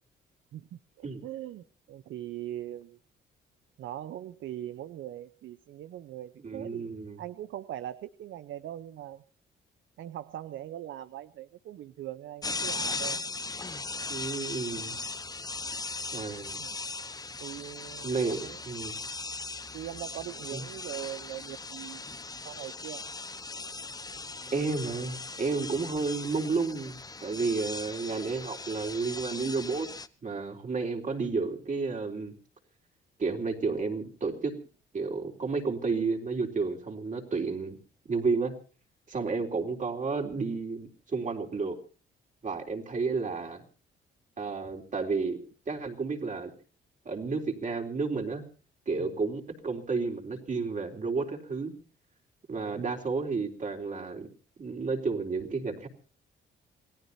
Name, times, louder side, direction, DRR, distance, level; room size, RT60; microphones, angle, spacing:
voice 1, 0.5-3.0 3.8-6.9 7.2-9.2 10.0-13.2 16.6-16.8 17.4-18.6 19.7-22.0 22.4-23.0 39.2-39.4 49.0-49.2 52.6-52.8, right 12 dB, 75° right, 13 dB, 0.9 m, -41 dB
voice 2, 6.4-7.2 14.1-15.0 16.1-16.6 18.0-18.9 20.5-20.7 24.5-29.9 30.2-32.3 33.2-34.5 34.9-37.8 38.1-38.5 39.1-41.8 42.4-43.6 44.4-45.4 45.7-46.5 47.0-48.4 48.9-51.7 52.5-54.3 54.6-55.9, right 4 dB, 40° right, 2 dB, 4.0 m, -31 dB
sound 1, 12.4-30.1, left 3 dB, 20° left, 1.1 m, -38 dB
28.0 x 18.0 x 2.8 m, 0.39 s
cardioid pair, 90°, 20 cm